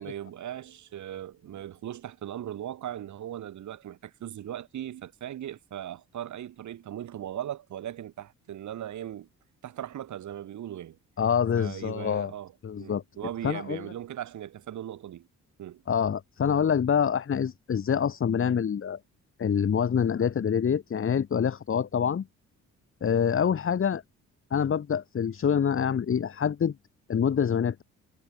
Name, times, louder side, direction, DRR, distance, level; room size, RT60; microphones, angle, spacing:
voice 1, 0.0-9.3 9.6-11.0 11.6-15.3 15.6-15.8, right 11 dB, 70° right, 6.8 m, -38 dB
voice 2, 11.2-12.3 12.6-13.0 13.4-13.9 15.9-19.0 19.4-22.3 23.0-24.0 24.5-26.7 27.1-27.8, left 7 dB, 45° left, 2.1 m, -26 dB
cardioid pair, 90°, 30 cm